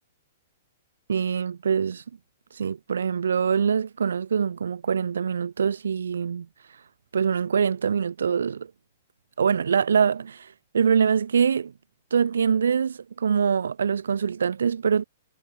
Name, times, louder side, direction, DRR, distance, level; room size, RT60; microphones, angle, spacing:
voice 1, 1.1-2.0 2.5-6.5 7.1-8.7 9.4-11.7 12.1-15.0, right 7 dB, 85° right, 5.1 m, -24 dB
hypercardioid pair, 135°, 0 cm